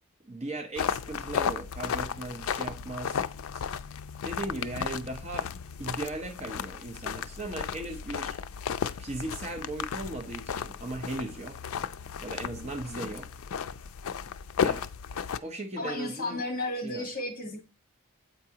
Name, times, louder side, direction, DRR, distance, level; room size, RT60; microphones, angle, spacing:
voice 1, 0.2-3.2 3.5-3.6 4.2-5.5 5.8-8.4 9.0-11.6 12.2-13.3 14.6-14.8 15.4-16.4 16.8-17.1, right 2 dB, 30° right, 0.8 m, -37 dB
sound 1, 0.8-15.4, left 7 dB, 65° left, 0.4 m, -34 dB
voice 2, 15.8-17.6, left 2 dB, 40° left, 1.5 m, -33 dB
8.0 x 4.7 x 2.8 m
head